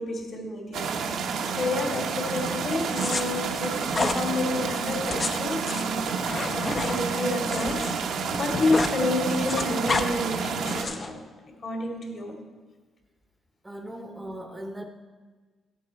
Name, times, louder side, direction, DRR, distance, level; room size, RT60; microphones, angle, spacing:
voice 1, 0.0-6.0 6.5-11.2 11.6-12.4, left 2 dB, 50° left, 1 dB, 2.3 m, -30 dB
sound 1, 0.7-10.8, right 5 dB, 75° right, 1.0 m, -29 dB
sound 2, 2.9-3.2 3.9-4.2 4.9-7.9 8.2-9.0 9.2-10.1 10.6-11.1, left 3 dB, 35° left, 0.7 m, -30 dB
voice 2, 13.6-14.8, right 1 dB, 15° right, 5 dB, 0.9 m, -38 dB
12.0 x 7.8 x 4.4 m, 1.4 s
cardioid pair, 90°, 0 cm